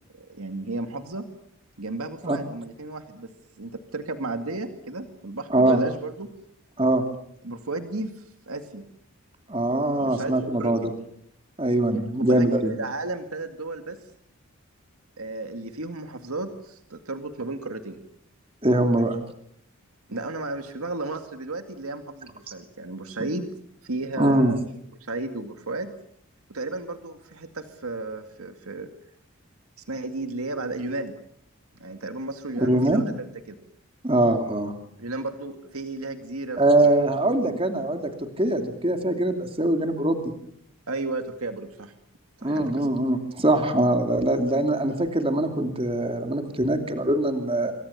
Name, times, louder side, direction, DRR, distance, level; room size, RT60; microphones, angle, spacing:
voice 1, 0.1-1.3 1.8-3.3 3.6-6.3 7.4-8.8 10.0-10.9 11.9-14.0 15.2-18.0 20.1-23.5 23.8-24.6 25.0-25.9 26.5-28.9 29.8-31.1 31.8-33.6 35.0-37.2 40.9-41.9 42.4-42.9, right 2 dB, 85° right, 7 dB, 2.2 m, -33 dB
voice 2, 9.5-10.9 11.6-12.7 18.6-19.2 24.2-24.5 32.6-33.0 34.0-34.7 36.6-40.3 42.4-47.7, right 1 dB, 25° right, 6 dB, 2.7 m, -22 dB
27.0 x 24.0 x 7.1 m, 0.69 s
head